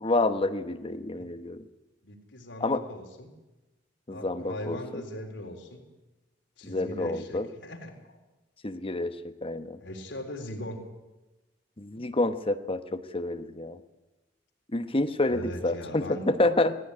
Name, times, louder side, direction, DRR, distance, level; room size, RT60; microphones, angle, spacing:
voice 1, 0.0-1.6 2.6-2.8 4.1-5.0 6.6-7.5 8.6-9.8 11.8-13.8 14.7-16.8, left 2 dB, 30° left, 8 dB, 1.1 m, -28 dB
voice 2, 2.0-3.3 4.1-5.8 6.6-8.2 9.8-10.8 15.3-16.3, left 1 dB, 85° left, 2 dB, 3.8 m, -40 dB
18.0 x 15.5 x 9.8 m, 1.1 s
head